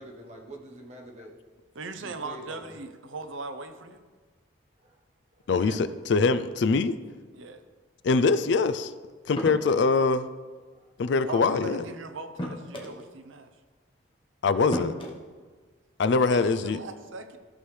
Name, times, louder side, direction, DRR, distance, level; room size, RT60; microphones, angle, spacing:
voice 1, 0.0-1.3 2.0-2.7 4.8-5.0 5.7-5.9 10.7-10.9, right 1 dB, 35° right, 1 dB, 1.1 m, -45 dB
voice 2, 1.7-4.0 5.6-5.9 7.3-7.6 11.2-13.5 16.1-17.4, right 3 dB, 75° right, 9 dB, 0.7 m, -39 dB
voice 3, 5.5-7.0 8.0-8.9 9.3-10.3 11.0-11.8 14.4-14.9 16.0-16.8, left 4 dB, 60° left, 13 dB, 0.4 m, -23 dB
sound 1, 9.4-10.0 11.4-11.6 12.4-13.1 14.1-14.2 14.7-15.2, equal, 25° left, 1.0 m, -34 dB
14.0 x 6.2 x 3.3 m, 1.4 s
head